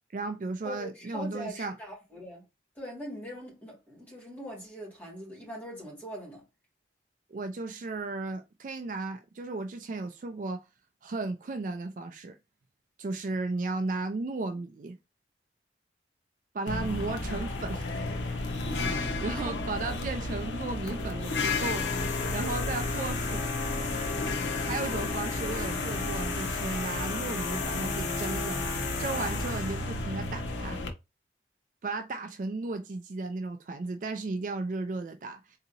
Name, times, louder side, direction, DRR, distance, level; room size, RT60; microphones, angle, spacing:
voice 1, 0.1-1.8 7.3-10.7 11.0-12.4 13.0-15.0 16.5-18.0 18.8-23.6 24.6-28.6 29.0-30.8 31.8-35.6, right 3 dB, 45° right, 0.4 m, -35 dB
voice 2, 0.6-2.4 2.8-6.4 19.3-19.6, equal, 10° left, 2.1 m, -41 dB
sound 1, 16.7-30.9, left 3 dB, 90° left, 0.7 m, -32 dB
3.9 x 2.7 x 2.6 m
head